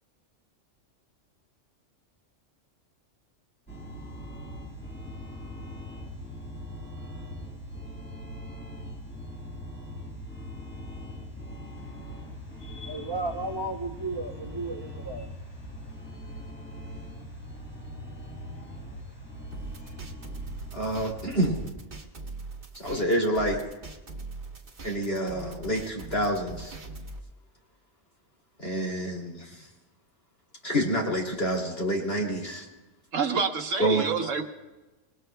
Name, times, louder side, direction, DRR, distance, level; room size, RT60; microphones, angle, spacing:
sound 1, 3.7-21.7, equal, 5° left, 6.5 m, -41 dB
voice 1, 11.8-17.9 18.2-20.0, right 2 dB, 25° right, 3 dB, 0.7 m, -39 dB
sound 2, 19.5-27.2, right 3 dB, 45° right, 1.5 m, -41 dB
voice 2, 20.7-21.6 22.7-23.6 24.8-26.7 28.6-29.7 30.6-32.7 33.8-34.0, equal, 50° left, 0 dB, 3.0 m, -28 dB
voice 3, 33.1-34.4, right 6 dB, 75° right, 5 dB, 1.4 m, -27 dB
26.0 x 20.0 x 2.3 m, 1.1 s
omnidirectional pair, 1.3 m